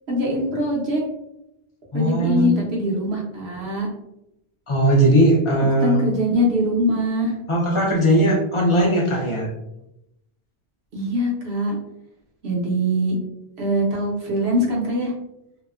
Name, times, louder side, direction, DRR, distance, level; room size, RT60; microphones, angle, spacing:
voice 1, 0.1-1.0 1.9-3.9 5.8-7.4 10.9-11.8 12.4-13.2 13.6-15.1, equal, 70° right, -3 dB, 1.0 m, -22 dB
voice 2, 1.9-2.5 4.7-6.0 7.5-9.5, right 1 dB, 35° left, -2 dB, 0.5 m, -18 dB
2.7 x 2.2 x 2.3 m, 0.84 s
omnidirectional pair, 1.1 m